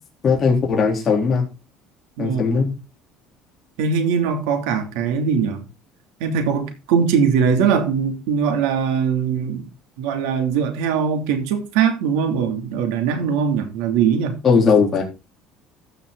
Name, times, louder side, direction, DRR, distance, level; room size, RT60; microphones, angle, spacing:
voice 1, 0.2-1.5 2.2-2.7 14.4-15.0, left 5 dB, 30° left, 3.7 m, -18 dB
voice 2, 2.2-2.6 3.8-5.6 6.2-9.7 10.0-14.3, right 6 dB, 85° right, 3.1 m, -21 dB
14.5 x 6.3 x 4.1 m
cardioid pair, 150°, 0 cm